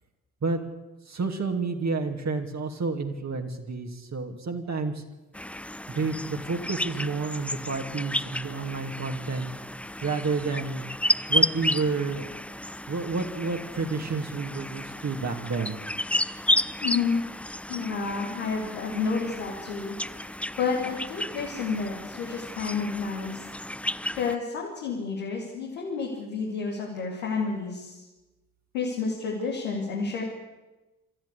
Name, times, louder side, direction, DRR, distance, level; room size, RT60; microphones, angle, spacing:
voice 1, 1.1-5.0 5.9-9.5 10.0-10.8 11.3-12.3 12.9-15.8, right 4 dB, 40° right, 3 dB, 3.0 m, -30 dB
sound 1, 5.3-24.4, left 1 dB, 5° left, 0.7 m, -32 dB
voice 2, 16.8-17.2 17.7-20.2 20.6-23.4 24.2-28.0 28.7-30.2, left 5 dB, 85° left, -3 dB, 2.9 m, -30 dB
25.5 x 13.5 x 8.6 m, 1.1 s
hypercardioid pair, 40°, 40 cm